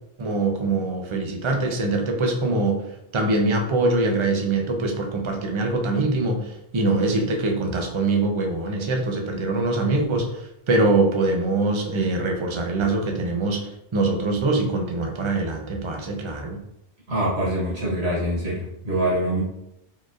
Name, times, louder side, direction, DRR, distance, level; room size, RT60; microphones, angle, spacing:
voice 1, 0.2-2.8 3.1-16.6, right 2 dB, 40° right, 2 dB, 0.4 m, -23 dB
voice 2, 17.1-19.4, right 1 dB, 65° right, -6 dB, 1.2 m, -24 dB
4.2 x 3.0 x 2.4 m, 0.85 s
omnidirectional pair, 1.2 m